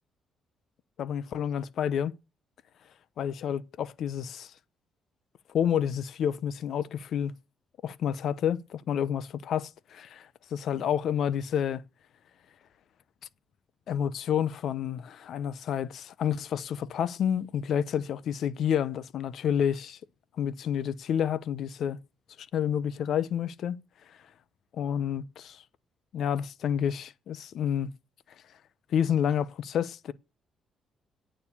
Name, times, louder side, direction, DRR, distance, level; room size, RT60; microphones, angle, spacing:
voice 1, 1.0-2.2 3.2-4.5 5.5-7.3 7.8-11.8 13.9-20.0 20.4-22.0 22.4-23.8 24.7-25.6 26.1-27.9 28.9-30.1, left 9 dB, 70° left, 0.9 m, -29 dB
9.0 x 7.3 x 8.6 m
cardioid pair, 90°, 0 cm